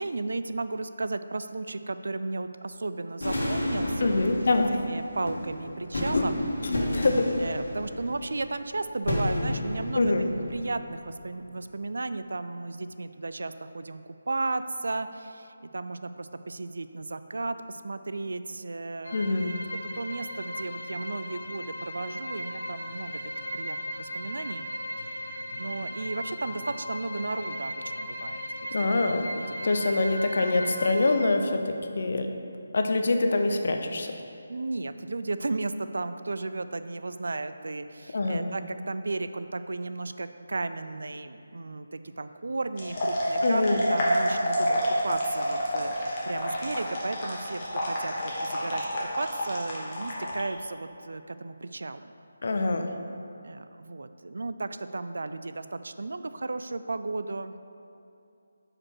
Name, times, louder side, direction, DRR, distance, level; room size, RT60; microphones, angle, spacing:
voice 1, 0.0-4.2 4.9-6.3 7.4-10.1 10.5-19.2 19.9-24.7 25.0-28.4 29.4-29.7 34.5-48.1 48.4-48.9 49.2-52.1 53.4-57.6, right 3 dB, 70° right, 11 dB, 0.3 m, -34 dB
sound 1, 3.2-11.4, left 1 dB, 70° left, 1.6 m, -32 dB
voice 2, 4.0-4.8 6.1-6.2 6.6-7.3 9.9-10.3 19.1-19.6 28.7-29.2 29.6-32.3 32.7-34.1 38.1-38.5 43.4-43.8 52.4-52.9, left 2 dB, 55° left, 5 dB, 0.6 m, -25 dB
sound 2, 19.0-31.2, equal, 90° left, 1.0 m, -37 dB
sound 3, 42.7-50.4, equal, 30° left, 1.2 m, -28 dB
6.0 x 5.0 x 4.4 m, 2.6 s
figure-of-eight pair, 165°, 0 cm